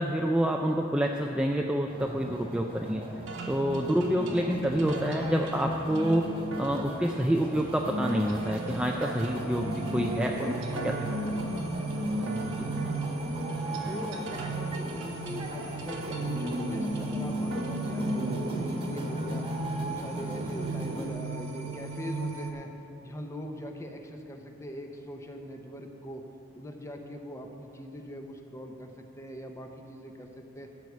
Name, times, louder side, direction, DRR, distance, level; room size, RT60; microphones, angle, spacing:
voice 1, 0.0-3.1 3.5-10.5 12.6-12.7, equal, 5° right, 1 dB, 0.3 m, -28 dB
sound 1, 1.9-21.1, equal, 25° right, 1.2 m, -35 dB
sound 2, 3.3-18.3, right 2 dB, 65° right, 1.1 m, -45 dB
sound 3, 6.3-22.5, right 5 dB, 90° right, 0.9 m, -39 dB
voice 2, 9.8-11.8 13.8-22.7 23.0-26.2 26.5-30.7, equal, 15° left, 4 dB, 0.8 m, -42 dB
13.0 x 4.7 x 8.3 m, 2.9 s
head